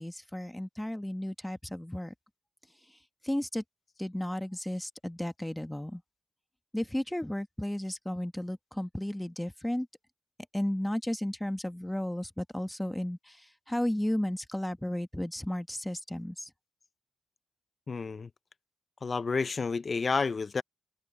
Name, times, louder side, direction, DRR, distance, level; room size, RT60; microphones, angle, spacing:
voice 1, 0.0-2.1 3.2-3.6 4.0-6.0 6.7-9.9 10.5-16.5, left 1 dB, 5° left, 1.2 m, -33 dB
voice 2, 17.9-18.3 19.0-20.6, left 4 dB, 40° left, 0.6 m, -30 dB
wide cardioid pair, 130°, 0 cm